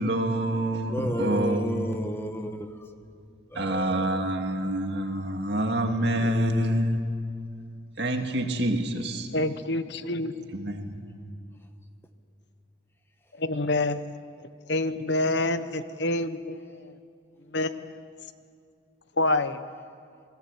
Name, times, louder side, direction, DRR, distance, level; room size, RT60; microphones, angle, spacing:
voice 1, 0.0-1.9 3.5-7.0 8.0-9.3 10.5-11.0, right 1 dB, 60° right, 4 dB, 2.3 m, -27 dB
voice 2, 0.9-2.9 3.5-4.3 6.1-6.8, equal, 10° left, 6 dB, 1.3 m, -33 dB
voice 3, 9.3-10.3 13.4-14.1 14.4-16.9 17.5-18.0 19.2-19.6, left 2 dB, 65° left, 11 dB, 1.0 m, -27 dB
27.5 x 19.5 x 8.3 m, 2.3 s
head